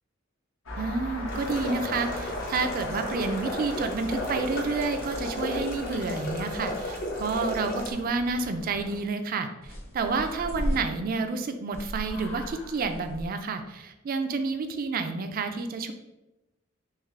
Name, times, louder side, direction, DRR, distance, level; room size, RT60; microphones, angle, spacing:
sound 1, 0.7-9.0 9.6-10.8 11.7-13.3, left 1 dB, 80° left, 0.9 m, -38 dB
voice 1, 0.8-15.9, right 4 dB, 45° right, 7 dB, 0.4 m, -30 dB
sound 2, 1.3-7.9, left 1 dB, 50° left, 0.9 m, -34 dB
3.6 x 3.2 x 3.2 m, 0.97 s
head